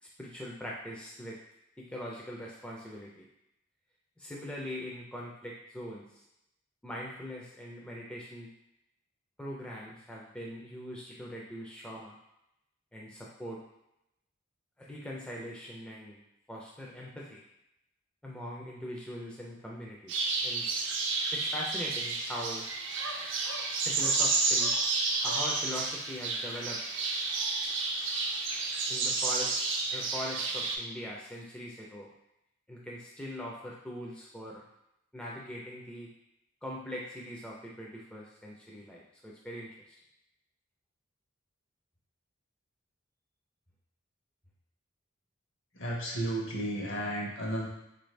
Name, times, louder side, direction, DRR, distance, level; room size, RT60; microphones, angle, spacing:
voice 1, 0.0-1.4 1.8-3.3 4.2-6.2 6.8-8.5 9.4-12.2 12.9-13.6 14.8-16.2 16.5-17.4 18.2-20.6 21.3-22.7 23.8-24.7 25.2-26.8 28.9-29.6 29.9-32.1 32.7-34.6 35.1-36.1 36.6-40.0, equal, 5° left, -4 dB, 0.4 m, -41 dB
sound 1, 20.1-30.8, right 3 dB, 60° right, 0.5 m, -31 dB
voice 2, 45.7-47.7, right 1 dB, 65° left, -2 dB, 0.9 m, -33 dB
3.7 x 2.6 x 3.2 m, 0.83 s
head